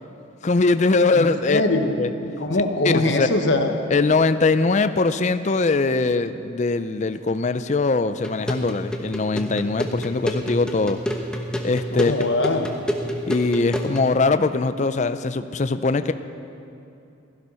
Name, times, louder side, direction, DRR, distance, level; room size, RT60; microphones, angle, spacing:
voice 1, 0.4-1.6 2.0-2.1 2.8-3.3 3.9-11.0 11.6-12.1 13.3-16.1, left 3 dB, 35° left, 11 dB, 0.4 m, -21 dB
voice 2, 1.1-1.9 2.2-3.7 11.9-12.7, left 2 dB, 60° left, 4 dB, 1.3 m, -22 dB
sound 1, 8.2-14.1, equal, 5° left, 1.0 m, -29 dB
16.5 x 12.5 x 5.6 m, 2.7 s
head